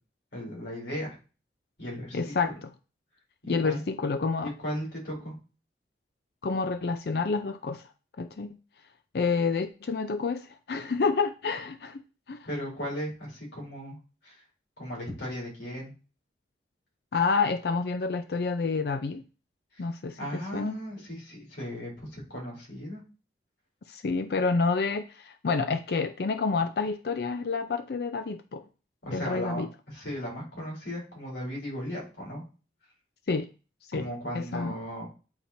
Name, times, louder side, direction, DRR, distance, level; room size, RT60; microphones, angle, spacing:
voice 1, 0.3-1.2 1.8-2.3 3.4-3.8 4.4-5.3 12.5-14.0 14.2-14.4 14.8-15.9 19.7-19.8 20.2-23.0 29.0-29.6 29.9-32.4 33.9-35.1, equal, 90° left, -3 dB, 3.5 m, -36 dB
voice 2, 2.1-2.7 3.5-4.5 6.4-7.9 8.2-8.5 9.1-12.0 12.3-12.4 17.1-19.2 19.8-20.8 23.9-28.6 29.1-29.7 33.3-33.5 33.9-34.0 34.3-34.7, left 4 dB, 65° left, 9 dB, 0.4 m, -28 dB
8.7 x 4.3 x 2.7 m, 0.34 s
head